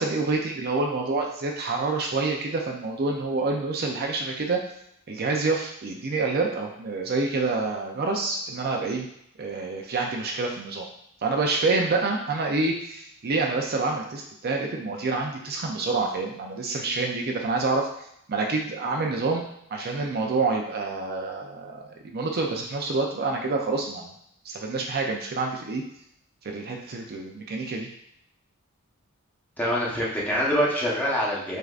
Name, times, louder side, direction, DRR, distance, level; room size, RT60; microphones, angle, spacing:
voice 1, 0.0-4.6 5.1-9.1 9.4-10.9 11.2-17.9 18.3-19.4 19.7-24.1 24.4-25.8 26.4-27.9, right 3 dB, 45° right, 1 dB, 0.5 m, -27 dB
voice 2, 29.6-31.6, equal, 10° left, -5 dB, 0.9 m, -25 dB
6.4 x 2.5 x 2.4 m, 0.73 s
head